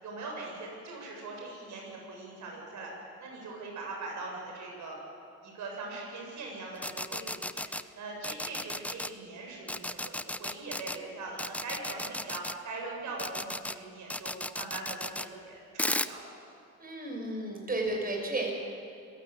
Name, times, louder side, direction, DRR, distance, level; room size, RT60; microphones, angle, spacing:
voice 1, 0.0-2.9 3.2-5.0 5.4-7.7 8.0-16.3, right 3 dB, 70° right, -1 dB, 7.4 m, -41 dB
sound 1, 6.8-7.8 8.2-9.1 9.7-11.0 11.4-12.5 13.2-13.7 14.1-15.3 15.8-16.1, left 1 dB, 5° left, 0.7 m, -34 dB
voice 2, 16.8-18.5, right 2 dB, 30° right, 1 dB, 6.6 m, -33 dB
26.5 x 16.0 x 8.6 m, 2.5 s
cardioid pair, 90°, 30 cm